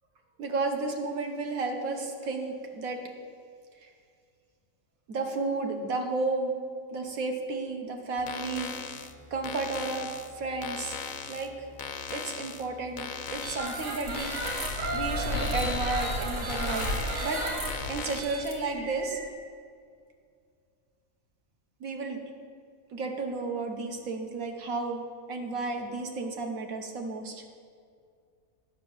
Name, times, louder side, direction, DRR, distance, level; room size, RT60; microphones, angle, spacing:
voice 1, 0.4-3.0 3.8-3.9 5.1-6.6 6.9-8.7 9.3-10.1 10.4-11.0 11.3-11.7 12.1-14.3 14.9-17.4 17.9-19.2 21.8-22.2 22.9-25.0 25.3-27.4, right 3 dB, 85° right, 3 dB, 1.5 m, -32 dB
sound 1, 8.2-18.2, left 6 dB, 60° left, 0.5 m, -40 dB
sound 2, 13.4-19.3, equal, 60° right, 2.2 m, -32 dB
9.9 x 5.6 x 7.1 m, 2.2 s
omnidirectional pair, 1.5 m